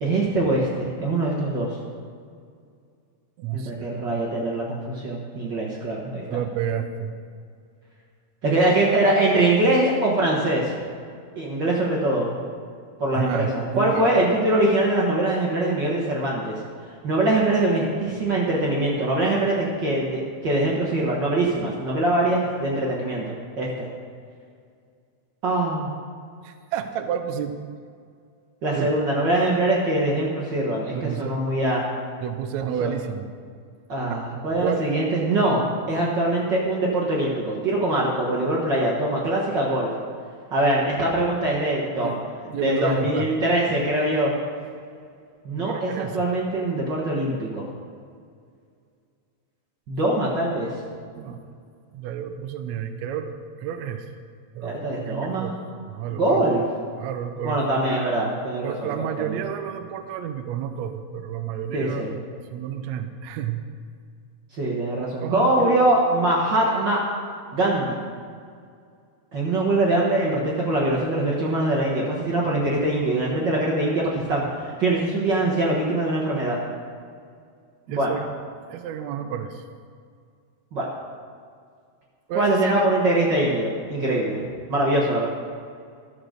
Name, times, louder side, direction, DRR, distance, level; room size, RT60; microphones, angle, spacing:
voice 1, 0.0-1.7 3.5-6.2 8.4-10.7 11.4-12.4 13.0-16.6 17.0-23.9 25.4-26.0 28.6-31.8 32.8-32.9 33.9-39.9 40.5-42.2 42.5-44.3 45.4-47.7 49.9-50.7 54.6-55.5 56.1-56.6 57.4-59.4 61.7-62.1 64.5-67.0 67.5-68.0 69.3-76.6 77.9-78.1 80.7-80.8 82.3-84.4 84.7-85.3, right 1 dB, 50° right, -4 dB, 1.5 m, -23 dB
voice 2, 3.4-3.7 6.3-7.1 13.2-14.0 26.4-27.6 28.7-28.9 30.9-31.5 32.2-33.3 34.6-34.9 42.0-42.2 42.5-43.3 45.6-46.3 51.2-51.4 51.9-54.1 54.6-55.6 55.9-56.4 57.0-57.6 58.6-62.1 62.5-63.7 65.2-65.8 77.9-78.3 78.7-79.6 82.3-82.9, right 9 dB, 75° right, 8 dB, 1.9 m, -30 dB
13.0 x 6.5 x 6.5 m, 2.2 s
omnidirectional pair, 3.5 m